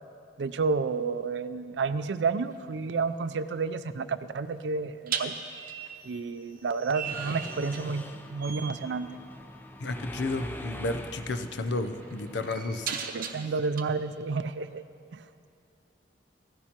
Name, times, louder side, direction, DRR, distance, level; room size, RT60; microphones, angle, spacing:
voice 1, 0.4-5.3 6.0-9.1 13.1-14.8 15.1-15.5, right 4 dB, 80° right, 13 dB, 0.4 m, -30 dB
sound 1, 2.5-2.7 5.1-8.1 8.4-8.9 10.3-10.5 11.0-13.8, right 7 dB, 55° right, 0.7 m, -38 dB
Mechanisms, 7.0-12.9, left 1 dB, 10° left, 0.5 m, -43 dB
voice 2, 9.8-12.9, left 2 dB, 90° left, 9 dB, 0.6 m, -32 dB
14.5 x 14.5 x 2.9 m, 2.5 s
head